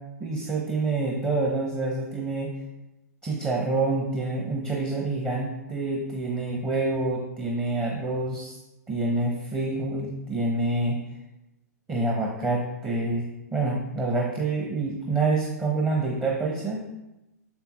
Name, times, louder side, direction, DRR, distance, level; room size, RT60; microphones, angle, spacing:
voice 1, 0.2-2.5 3.2-8.6 8.9-11.0 11.9-13.2 13.5-16.8, right 2 dB, 15° right, -2 dB, 1.0 m, -27 dB
6.9 x 5.5 x 3.0 m, 0.96 s
figure-of-eight pair, 115°, 9 cm